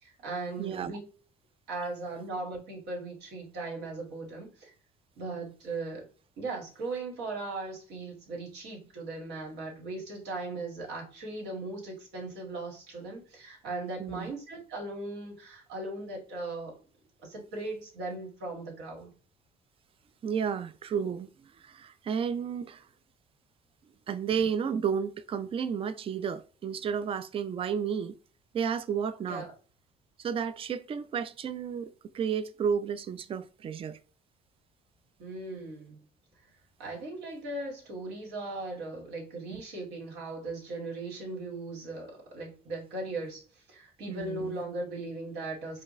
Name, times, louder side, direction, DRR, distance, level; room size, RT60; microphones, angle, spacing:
voice 1, 0.0-1.0 1.7-4.7 5.2-6.1 6.4-16.8 17.2-19.1 29.2-29.5 35.2-36.0 36.8-43.4 43.7-45.8, right 2 dB, 85° right, 1.9 m, -38 dB
voice 2, 0.6-1.0 14.0-14.3 20.2-21.3 21.6-22.8 24.1-28.2 28.5-29.4 30.2-34.0 39.5-39.6 44.1-44.6, right 7 dB, 35° right, 0.4 m, -32 dB
4.9 x 2.3 x 3.1 m
cardioid pair, 110°, 17 cm